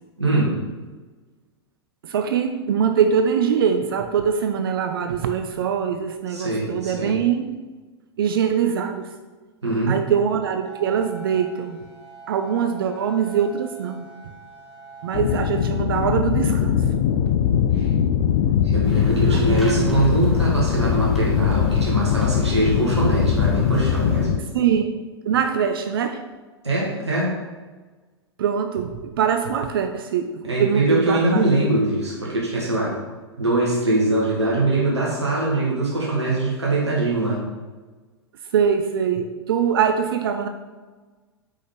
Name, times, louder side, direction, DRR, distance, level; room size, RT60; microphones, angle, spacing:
voice 1, 0.2-0.6 6.3-7.1 9.6-10.0 17.7-17.9 18.6-24.4 26.6-27.4 30.4-33.0 33.4-37.4, right 2 dB, 80° right, -4 dB, 1.4 m, -22 dB
voice 2, 2.0-7.5 8.2-9.1 9.9-11.8 12.3-14.0 15.0-16.8 19.2-20.2 24.5-24.9 25.3-26.2 28.4-31.5 38.5-40.5, right 7 dB, 55° right, 7 dB, 0.4 m, -23 dB
sound 1, 10.6-15.8, right 2 dB, 85° left, 1.2 m, -43 dB
sound 2, 15.1-24.4, left 9 dB, 55° left, 0.5 m, -21 dB
sound 3, 18.8-24.3, right 1 dB, ahead, 1.2 m, -36 dB
5.4 x 5.1 x 3.7 m, 1.3 s
figure-of-eight pair, 95°, 14 cm